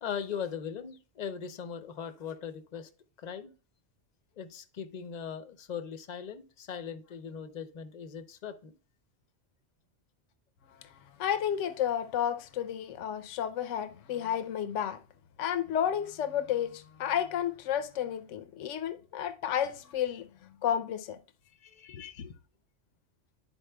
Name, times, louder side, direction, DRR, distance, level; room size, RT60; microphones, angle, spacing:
voice 1, 0.0-2.9 3.2-3.5 4.4-8.8 21.6-21.9, left 7 dB, 50° left, 0.6 m, -39 dB
voice 2, 11.2-15.0 15.4-20.3 20.6-21.2 21.8-22.3, left 9 dB, 85° left, 0.9 m, -32 dB
11.5 x 4.3 x 2.2 m
omnidirectional pair, 1.2 m